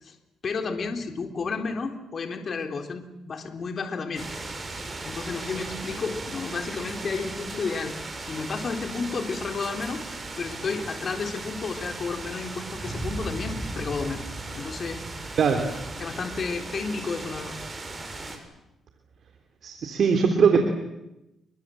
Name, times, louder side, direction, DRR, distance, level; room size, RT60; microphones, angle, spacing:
voice 1, 0.4-4.3 5.0-14.2 14.5-15.0 16.0-17.6, left 4 dB, 50° left, 5 dB, 3.8 m, -32 dB
sound 1, 4.2-18.4, right 2 dB, 30° right, 7.1 m, -37 dB
voice 2, 19.6-20.6, right 6 dB, 60° right, 5 dB, 3.3 m, -20 dB
29.0 x 23.5 x 7.9 m, 0.92 s
supercardioid pair, 60°, 0 cm